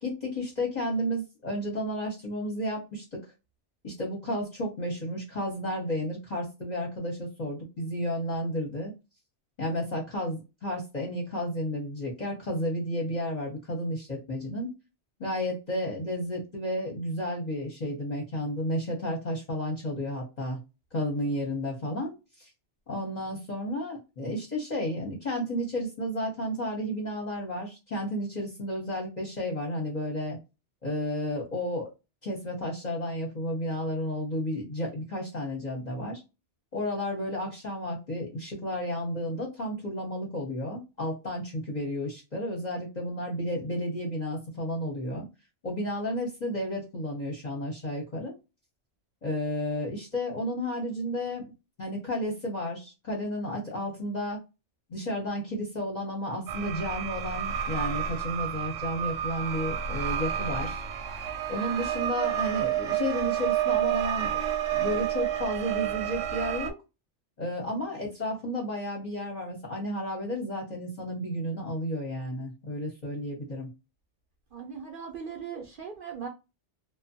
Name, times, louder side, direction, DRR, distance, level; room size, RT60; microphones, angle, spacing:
voice 1, 0.0-3.2 3.8-8.9 9.6-14.7 15.2-20.6 20.9-22.5 22.9-30.4 30.8-31.9 32.2-36.2 36.7-45.3 45.6-48.3 49.2-51.5 51.8-54.4 54.9-60.8 61.5-64.4 64.7-66.8 67.4-73.7, equal, 40° left, 0.8 m, -32 dB
sound 1, 56.5-66.7, right 10 dB, 85° right, 0.9 m, -30 dB
voice 2, 74.5-76.3, right 6 dB, 55° right, 0.7 m, -39 dB
2.5 x 2.2 x 2.6 m
omnidirectional pair, 1.2 m